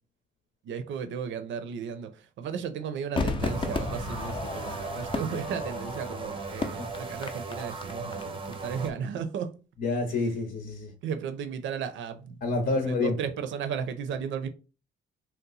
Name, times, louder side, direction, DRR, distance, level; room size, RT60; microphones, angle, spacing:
voice 1, 0.6-9.5 11.0-12.4 12.6-14.5, right 7 dB, 70° right, 0.5 m, -35 dB
Crowd / Fireworks, 3.2-8.5 8.8-8.9, left 3 dB, 25° left, 0.5 m, -34 dB
sound 1, 3.4-8.9, right 4 dB, 25° right, 0.6 m, -38 dB
voice 2, 9.8-10.9 12.4-13.2, left 3 dB, 55° left, 0.8 m, -28 dB
2.8 x 2.1 x 3.9 m
cardioid pair, 90°, 20 cm